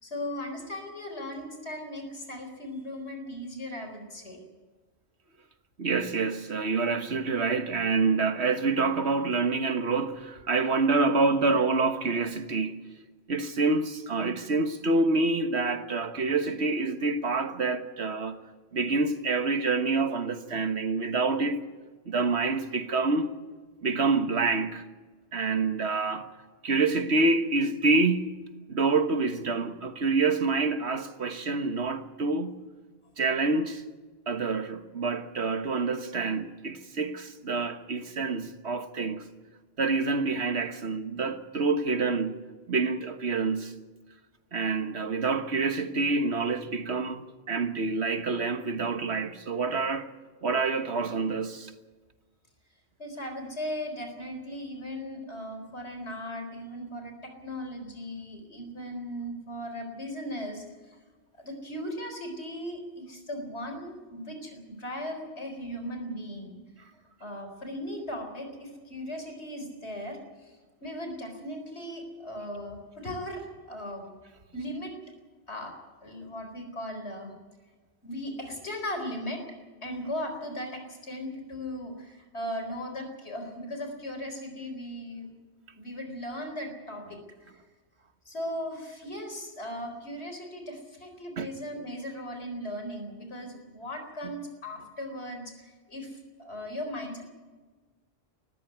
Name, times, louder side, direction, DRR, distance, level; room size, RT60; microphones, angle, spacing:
voice 1, 0.0-4.4 53.0-61.0 61.4-66.6 67.2-74.1 74.5-74.9 75.5-75.8 76.0-77.3 78.0-79.4 79.8-85.3 85.8-87.2 87.5-87.6 88.2-97.2, equal, 85° left, 4.5 m, -37 dB
voice 2, 5.8-12.8 13.3-18.4 18.7-21.6 22.1-23.3 23.8-24.8 25.3-26.3 26.6-32.6 33.2-33.8 34.3-39.2 39.8-42.3 42.7-43.7 44.5-50.1 50.4-51.7 91.4-91.5 94.2-94.3, right 3 dB, 80° right, 1.6 m, -27 dB
20.0 x 15.0 x 9.4 m
omnidirectional pair, 1.1 m